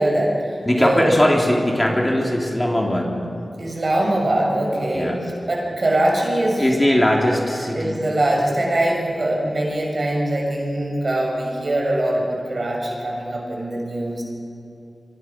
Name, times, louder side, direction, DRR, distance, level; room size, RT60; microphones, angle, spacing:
voice 1, 0.0-1.1 3.6-5.1 5.5-6.6 7.7-14.2, right 1 dB, 50° right, -1 dB, 6.8 m, -22 dB
voice 2, 0.7-3.1 4.9-5.2 6.6-8.1, left 1 dB, 20° left, -1 dB, 3.7 m, -19 dB
25.0 x 24.5 x 6.2 m, 2.6 s
wide cardioid pair, 65°, 0 cm